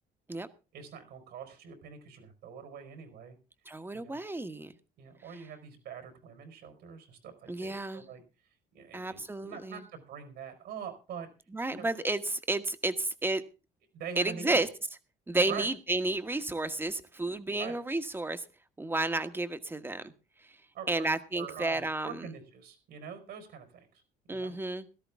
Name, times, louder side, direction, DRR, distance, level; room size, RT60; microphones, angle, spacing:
voice 1, 0.7-3.3 3.9-4.2 5.0-8.2 8.7-11.3 11.7-11.9 13.9-14.6 15.5-15.7 17.6-17.8 20.7-24.0 24.3-24.5, right 7 dB, 75° right, 7 dB, 4.6 m, -44 dB
voice 2, 3.7-4.7 7.5-8.0 8.9-9.8 11.5-13.4 14.2-14.7 15.3-18.4 18.8-20.1 20.9-22.3 24.3-24.9, right 2 dB, 15° right, 10 dB, 1.3 m, -31 dB
16.5 x 13.5 x 3.6 m, 0.32 s
cardioid pair, 110°, 17 cm